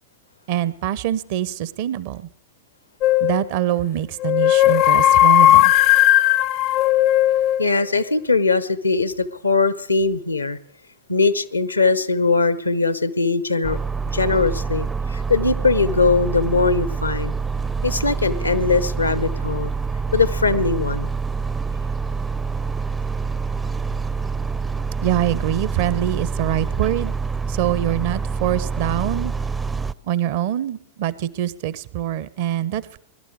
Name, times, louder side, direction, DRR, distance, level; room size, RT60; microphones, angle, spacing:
voice 1, 0.5-2.3 3.2-5.7 25.0-27.1 27.5-29.3 30.0-33.0, right 12 dB, 50° right, 0.7 m, -24 dB
sound 1, 3.0-3.4 4.2-7.7, left 14 dB, 40° left, 0.5 m, -15 dB
voice 2, 7.6-10.6 11.1-13.8 14.1-17.3 17.8-19.7 20.1-21.1, left 4 dB, 80° left, 0.7 m, -20 dB
sound 2, 13.6-29.9, right 5 dB, 15° right, 0.5 m, -26 dB
21.0 x 11.5 x 4.9 m
figure-of-eight pair, 90°, 0 cm